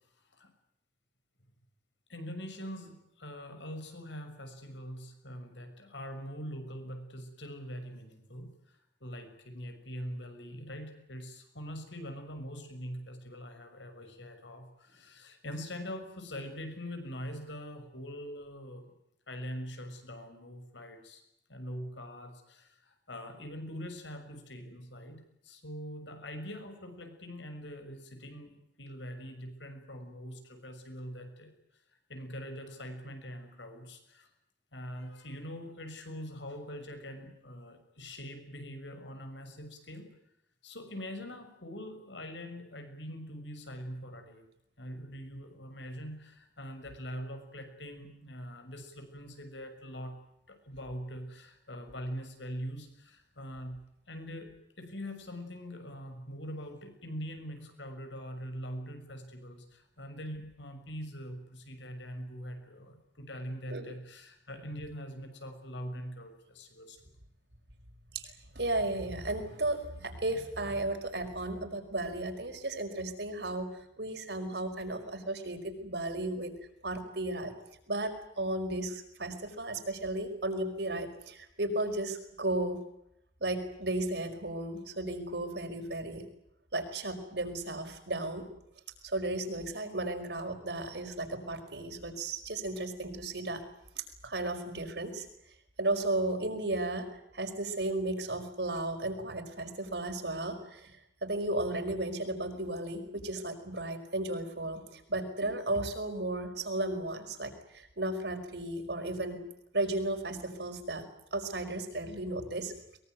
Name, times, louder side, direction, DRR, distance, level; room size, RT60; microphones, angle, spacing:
voice 1, 2.1-18.9 19.3-21.2 21.5-31.5 32.1-34.3 34.7-40.1 40.6-44.5 44.8-50.2 50.5-53.8 54.1-67.0, equal, 90° left, 7 dB, 6.4 m, -43 dB
voice 2, 68.1-73.7 74.0-76.5 76.8-77.5 77.9-82.8 83.4-86.2 86.7-88.4 89.0-93.6 93.9-95.3 95.8-97.1 97.3-100.9 101.2-109.4 109.7-111.0 111.3-112.7, right 2 dB, 65° right, 6 dB, 5.2 m, -34 dB
23.0 x 23.0 x 9.4 m, 0.80 s
head